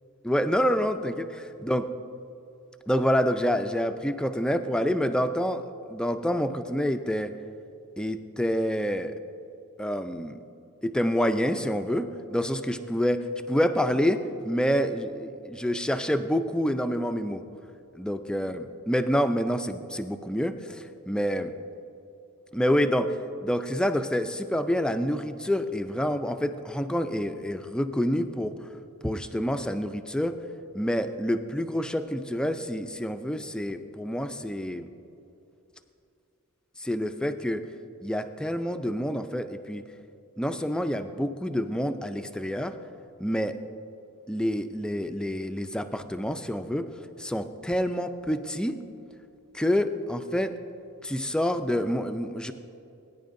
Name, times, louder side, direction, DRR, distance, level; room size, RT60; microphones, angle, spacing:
voice 1, 0.2-1.9 2.9-5.6 5.9-7.3 8.0-9.1 9.8-10.4 10.8-17.4 17.9-21.5 22.5-23.2 23.4-28.6 29.0-30.4 30.7-34.9 36.8-37.6 38.0-39.8 40.4-42.8 43.2-43.6 44.3-46.9 47.2-48.8 49.5-50.5 51.0-52.5, equal, 5° left, 9 dB, 0.3 m, -27 dB
19.5 x 9.8 x 2.6 m, 2.7 s
head